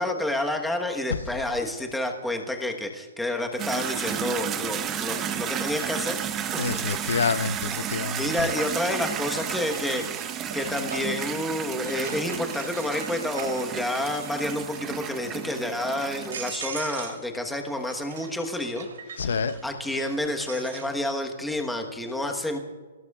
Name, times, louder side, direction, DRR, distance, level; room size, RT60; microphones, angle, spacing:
voice 1, 0.0-6.2 8.2-10.2 10.5-18.9 19.1-22.6, left 1 dB, 5° left, 3 dB, 1.2 m, -29 dB
sound 1, 3.6-16.5, right 9 dB, 20° right, 0.8 m, -32 dB
sound 2, 4.8-4.9 6.6-7.1 7.5-11.3 11.8-14.4 14.7-15.2 15.7-15.8 16.2-17.2 17.5-20.9, right 6 dB, 70° right, 3.2 m, -41 dB
voice 2, 6.6-8.5 19.2-19.6, left 5 dB, 85° left, 13 dB, 0.7 m, -27 dB
27.5 x 17.5 x 2.4 m, 1.4 s
hypercardioid pair, 160°, 0 cm